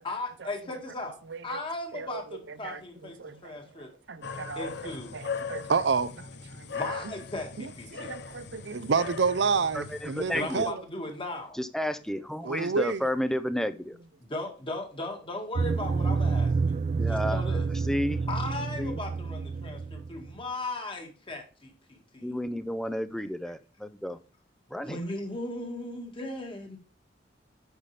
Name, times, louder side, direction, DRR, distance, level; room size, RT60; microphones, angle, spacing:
voice 1, 0.0-3.9 4.6-5.1 6.7-8.2 10.3-11.6 14.2-16.8 17.1-17.7 18.3-22.3 24.8-26.8, left 2 dB, 30° left, 2.0 m, -37 dB
voice 2, 3.2-3.6 4.1-4.7 5.1-6.7 7.9-10.8 12.4-13.0, right 5 dB, 70° right, 0.7 m, -29 dB
sound 1, 4.2-10.7, left 5 dB, 65° left, 0.7 m, -39 dB
voice 3, 9.7-10.7 11.5-14.0 17.0-17.4 17.7-18.3 18.8-19.0 22.2-24.2 24.7-25.0, equal, 5° left, 0.6 m, -31 dB
sound 2, 15.6-20.3, right 4 dB, 40° right, 0.3 m, -28 dB
8.9 x 5.9 x 3.3 m
head